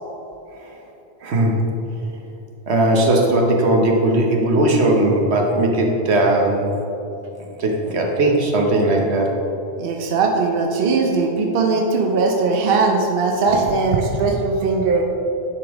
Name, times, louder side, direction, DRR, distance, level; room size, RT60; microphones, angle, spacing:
voice 1, 1.2-1.6 2.7-6.8 7.6-9.3, right 1 dB, 85° right, 1 dB, 1.2 m, -18 dB
voice 2, 9.8-15.0, right 4 dB, 65° right, 1 dB, 0.8 m, -19 dB
10.0 x 5.1 x 3.5 m, 2.9 s
omnidirectional pair, 1.1 m